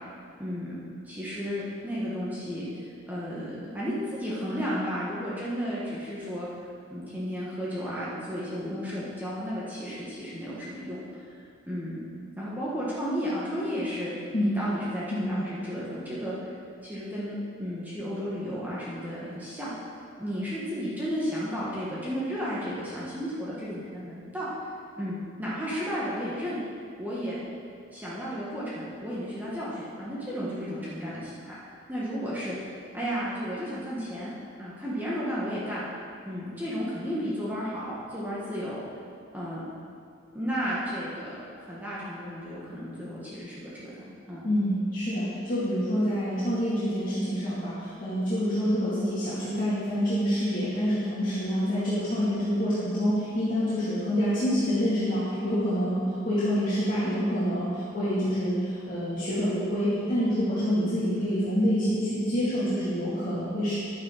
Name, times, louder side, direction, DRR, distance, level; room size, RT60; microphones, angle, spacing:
voice 1, 0.4-0.8 1.1-6.5 6.9-12.0 12.4-14.1 14.4-16.5 16.8-19.7 20.2-24.5 25.0-26.6 27.0-27.4 27.9-31.5 31.9-32.5 32.9-34.3 34.6-35.8 36.3-38.8 39.3-39.6 40.3-44.5, equal, 10° right, -8 dB, 1.6 m, -33 dB
voice 2, 15.1-15.5 44.4-63.7, equal, 45° left, -13 dB, 2.7 m, -27 dB
11.5 x 9.4 x 4.2 m, 2.4 s
head